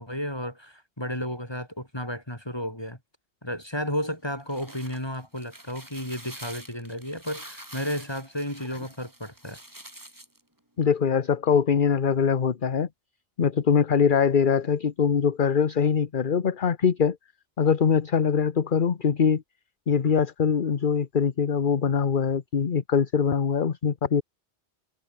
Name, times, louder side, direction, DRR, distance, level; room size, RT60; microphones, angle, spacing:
voice 1, 0.0-3.0 3.4-9.6, equal, 20° left, 5.5 m, -33 dB
sound 1, 4.3-10.4, right 1 dB, 15° right, 2.9 m, -46 dB
voice 2, 10.8-12.9 13.4-17.2 17.6-19.4 19.9-24.2, left 6 dB, 45° left, 1.1 m, -23 dB
omnidirectional pair, 1.2 m